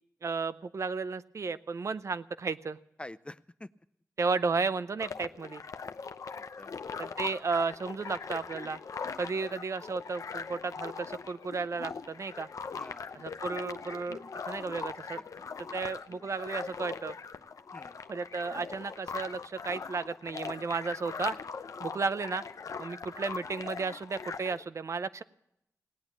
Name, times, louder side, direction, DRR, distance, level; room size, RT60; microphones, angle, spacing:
voice 1, 0.2-2.8 4.2-5.6 7.0-8.8 9.2-12.5 13.1-15.2 15.7-17.1 18.1-21.3 21.8-22.4 22.8-25.2, right 4 dB, 60° right, 14 dB, 0.6 m, -33 dB
voice 2, 3.0-3.7 6.3-7.1 9.3-9.5 12.7-13.1 15.1-15.6 17.7-18.0 21.8-21.9, left 1 dB, 20° left, 16 dB, 0.5 m, -48 dB
sound 1, 5.0-24.6, left 5 dB, 70° left, 0.7 m, -41 dB
18.0 x 8.9 x 8.3 m, 0.80 s
cardioid pair, 65°, 6 cm